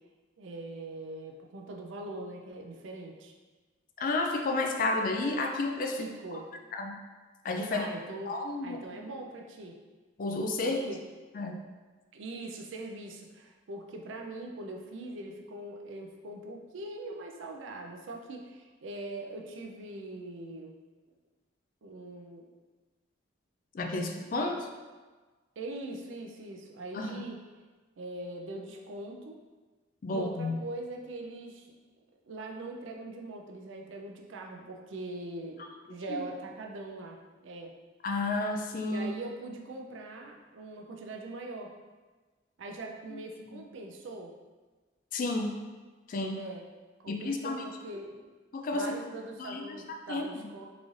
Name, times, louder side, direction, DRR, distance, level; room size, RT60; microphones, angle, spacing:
voice 1, 0.4-3.3 6.0-6.5 7.7-8.3 8.6-9.8 10.6-11.0 12.1-20.7 21.8-22.4 24.3-24.6 25.6-27.4 28.0-29.4 30.1-31.7 32.2-35.6 35.9-37.7 38.9-41.7 42.6-44.3 46.4-46.6 47.0-48.3 48.7-50.6, right 2 dB, 75° right, 1 dB, 0.5 m, -42 dB
voice 2, 4.0-6.0 6.7-6.9 7.4-7.9 8.3-8.8 10.2-10.8 11.3-11.6 23.7-24.6 26.9-27.3 30.0-30.6 36.1-36.3 38.0-39.1 45.1-45.6 46.1-46.5 47.1-47.6 48.5-49.0 49.4-49.8 50.1-50.5, left 2 dB, 45° left, 3 dB, 0.3 m, -31 dB
3.9 x 2.5 x 3.1 m, 1.3 s
head